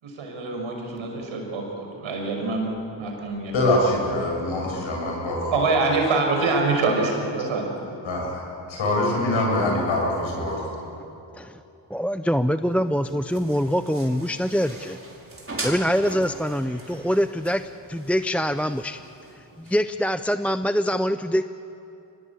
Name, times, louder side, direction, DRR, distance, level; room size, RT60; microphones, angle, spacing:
voice 1, 0.0-2.7 3.0-3.6 5.5-7.7, right 3 dB, 80° right, 1 dB, 5.9 m, -25 dB
voice 2, 3.5-5.6 8.0-10.8, left 1 dB, 75° left, -1 dB, 8.0 m, -24 dB
voice 3, 11.9-15.0 15.6-17.6 17.9-19.0 19.6-21.4, equal, 5° left, 11 dB, 0.6 m, -24 dB
sound 1, 12.6-19.8, right 2 dB, 25° right, 5.4 m, -40 dB
23.5 x 20.0 x 8.5 m, 2.8 s
supercardioid pair, 55°, 48 cm